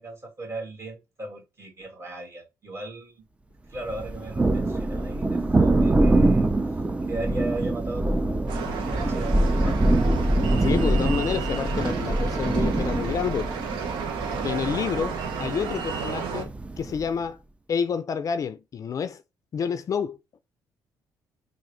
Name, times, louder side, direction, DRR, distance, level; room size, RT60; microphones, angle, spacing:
voice 1, 0.0-3.2 3.7-6.5 7.1-10.1, right 2 dB, 35° right, 2.1 m, -37 dB
Thunder, 3.9-17.1, right 2 dB, 15° right, 0.4 m, -24 dB
sound 1, 8.5-16.4, right 6 dB, 80° right, 0.8 m, -33 dB
voice 2, 10.6-13.5 14.4-15.1 15.4-16.5 16.8-17.4 17.7-19.2 19.5-20.2, left 7 dB, 45° left, 0.4 m, -28 dB
3.6 x 2.5 x 3.2 m
supercardioid pair, 75°, 8 cm